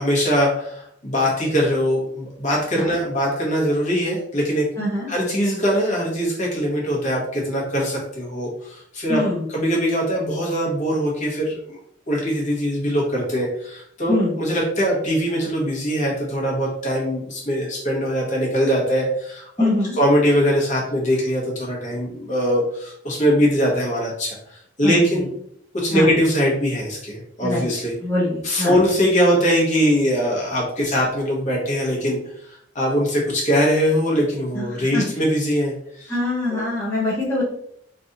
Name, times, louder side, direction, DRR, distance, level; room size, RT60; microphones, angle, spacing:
voice 1, 0.0-4.7 5.1-9.2 9.5-11.8 12.1-19.7 20.0-24.4 24.8-25.2 25.7-27.9 28.4-36.2 36.5-36.6, equal, 40° left, -3 dB, 1.3 m, -22 dB
voice 2, 4.8-5.1 9.1-9.4 14.1-14.3 19.6-20.0 24.8-25.3 25.9-26.1 27.4-27.7 28.0-28.7 34.5-34.6 34.9-35.1 36.1-37.4, left 2 dB, 15° left, -8 dB, 0.8 m, -23 dB
3.3 x 2.7 x 3.9 m, 0.69 s
head